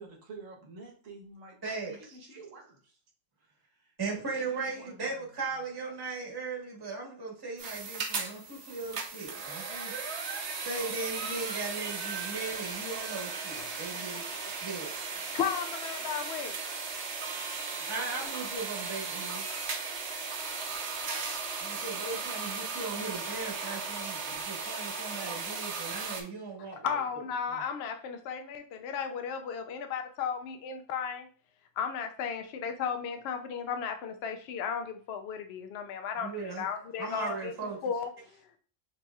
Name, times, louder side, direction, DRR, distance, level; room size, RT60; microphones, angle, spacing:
voice 1, 0.0-3.0 3.4-5.4 17.3-17.7 37.0-37.1, right 3 dB, 80° right, -1 dB, 1.5 m, -50 dB
voice 2, 1.6-1.9 4.0-9.9 10.6-14.2 14.6-14.9 17.8-19.4 21.6-26.9 36.2-36.6 37.0-37.8, right 4 dB, 20° right, -2 dB, 1.1 m, -38 dB
sound 1, 7.6-26.2, right 4 dB, 60° right, 1.0 m, -36 dB
voice 3, 15.3-16.6 26.8-31.3 31.8-37.5 37.8-38.6, left 7 dB, 60° left, 7 dB, 0.8 m, -35 dB
sound 2, 18.2-18.4 19.4-19.7 20.7-21.0 21.9-22.1 23.1-23.4 24.3-24.6 25.0-25.1, left 4 dB, 90° left, 1.3 m, -53 dB
6.9 x 3.0 x 2.3 m, 0.42 s
omnidirectional pair, 1.3 m